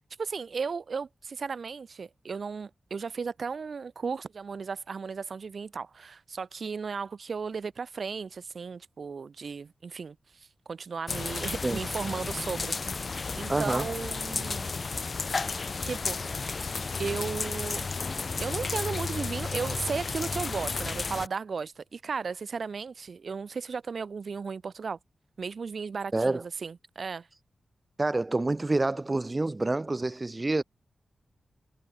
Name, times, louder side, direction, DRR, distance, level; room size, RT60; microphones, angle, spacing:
voice 1, 0.2-12.7 13.0-14.7 15.8-16.2 17.0-17.8 18.4-25.0 25.4-27.3, right 5 dB, 65° right, 1.5 m, -35 dB
sound 1, 11.1-21.3, left 4 dB, 50° left, 3.4 m, -33 dB
voice 2, 13.5-13.9 26.1-26.4 28.0-30.6, right 2 dB, 30° right, 1.3 m, -27 dB
cardioid pair, 60°, 0 cm